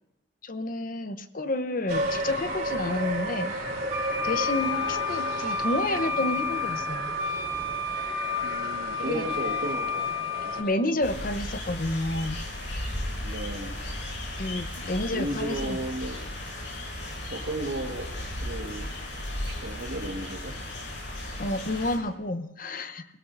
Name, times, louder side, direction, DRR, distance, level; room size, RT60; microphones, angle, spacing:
voice 1, 0.4-3.5 4.2-7.2 9.0-9.3 10.3-12.4 14.4-15.8 21.4-23.1, left 1 dB, 50° left, 11 dB, 0.8 m, -30 dB
sound 1, 1.9-10.6, right 1 dB, 55° right, 3.4 m, -33 dB
Wind instrument woodwind instrument, 3.9-10.7, left 4 dB, 40° right, 3.2 m, -30 dB
voice 2, 8.4-10.0 10.4-10.9 13.2-13.8 15.1-16.2 17.3-18.1 18.4-18.9 19.5-20.5, right 1 dB, 75° right, -3 dB, 1.5 m, -34 dB
sound 2, 11.0-22.0, left 1 dB, 90° left, 6.4 m, -35 dB
28.0 x 18.0 x 2.6 m, 0.86 s
head